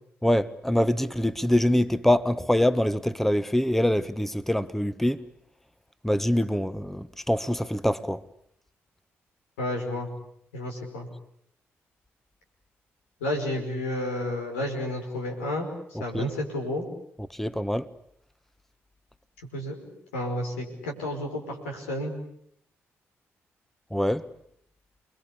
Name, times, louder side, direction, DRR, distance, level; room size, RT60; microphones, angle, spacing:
voice 1, 0.2-5.2 6.0-8.2 16.1-16.3 17.4-17.8 23.9-24.2, left 1 dB, 5° left, 1.3 m, -24 dB
voice 2, 9.6-10.1 10.5-11.1 13.2-15.7 16.0-16.9 19.5-22.1, left 1 dB, 85° left, 5.2 m, -31 dB
29.5 x 22.5 x 8.3 m
hypercardioid pair, 40°, 7 cm